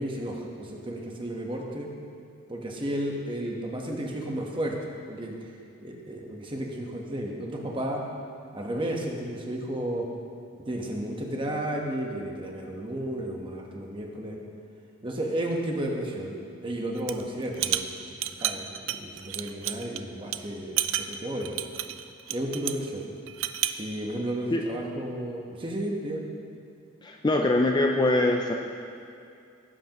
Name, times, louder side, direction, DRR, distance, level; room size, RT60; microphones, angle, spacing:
voice 1, 0.0-1.9 2.5-4.7 5.1-5.5 5.8-8.0 8.5-10.1 10.6-14.4 15.0-16.4 16.6-17.9 18.4-21.6 22.3-23.1 23.8-26.2, right 1 dB, 25° right, 0 dB, 1.1 m, -33 dB
sound 1, 17.0-17.2 17.5-20.0 20.3-20.4 20.8-22.9 23.3-23.8, right 12 dB, 60° right, 0.4 m, -30 dB
voice 2, 27.0-28.5, left 2 dB, 20° left, 2 dB, 0.4 m, -23 dB
17.5 x 8.0 x 3.0 m, 2.4 s
head